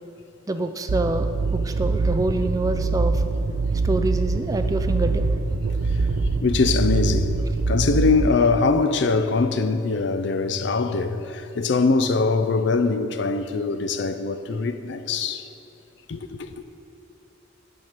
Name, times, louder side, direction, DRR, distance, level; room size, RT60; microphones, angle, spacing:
voice 1, 0.5-3.2 3.8-5.2, right 2 dB, 15° right, 0.3 m, -26 dB
sound 1, 0.9-8.3, right 3 dB, 80° right, 0.5 m, -24 dB
voice 2, 6.4-7.4 7.7-15.5 16.1-16.5, left 4 dB, 60° left, 0.4 m, -22 dB
9.2 x 4.5 x 6.5 m
head